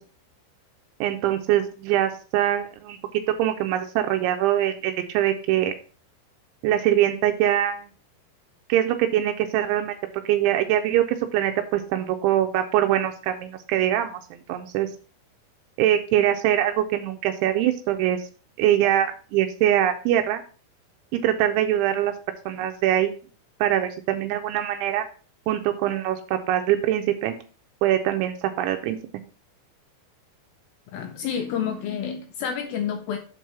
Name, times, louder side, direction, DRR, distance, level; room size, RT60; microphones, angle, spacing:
voice 1, 1.0-3.0 3.4-5.7 6.6-7.9 8.7-10.0 10.3-14.9 15.8-18.3 18.6-20.4 21.1-22.1 22.5-23.2 23.6-25.1 25.5-27.3 27.8-29.0, right 12 dB, 85° right, 6 dB, 3.0 m, -23 dB
voice 2, 30.9-33.2, left 8 dB, 90° left, 4 dB, 2.0 m, -29 dB
7.5 x 4.7 x 5.8 m, 0.39 s
omnidirectional pair, 5.3 m